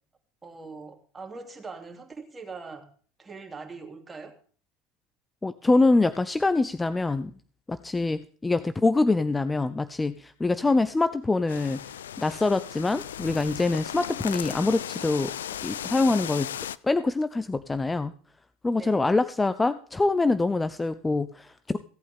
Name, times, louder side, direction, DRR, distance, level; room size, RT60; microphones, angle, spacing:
voice 1, 0.4-2.9 3.2-4.4 8.6-8.7 10.6-10.8 18.8-19.1, right 4 dB, 20° right, 3 dB, 2.9 m, -42 dB
voice 2, 5.4-7.3 7.7-15.3 15.6-16.5 16.8-18.1 18.6-21.8, left 3 dB, 15° left, 13 dB, 0.7 m, -25 dB
sound 1, 11.5-16.8, left 10 dB, 85° left, 0.4 m, -36 dB
17.0 x 8.5 x 3.6 m, 0.43 s
hypercardioid pair, 85°, 0 cm